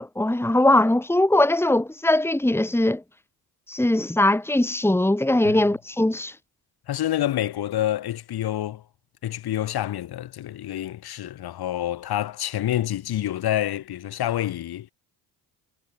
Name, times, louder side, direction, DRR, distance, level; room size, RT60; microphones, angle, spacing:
voice 1, 0.0-3.0 3.7-6.3, left 1 dB, 5° left, 3.0 m, -21 dB
voice 2, 6.9-8.8 9.2-14.9, left 12 dB, 65° left, 6.6 m, -27 dB
supercardioid pair, 85°, 41 cm